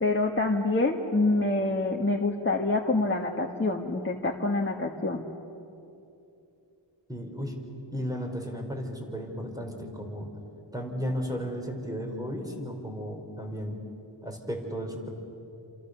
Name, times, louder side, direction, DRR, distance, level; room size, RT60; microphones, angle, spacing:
voice 1, 0.0-5.2, left 2 dB, 25° left, 0 dB, 1.5 m, -26 dB
voice 2, 7.1-7.5 7.9-10.3 10.7-13.8 14.2-15.1, equal, 5° right, 2 dB, 4.7 m, -34 dB
29.0 x 27.5 x 6.8 m, 2.8 s
wide cardioid pair, 100°, 48 cm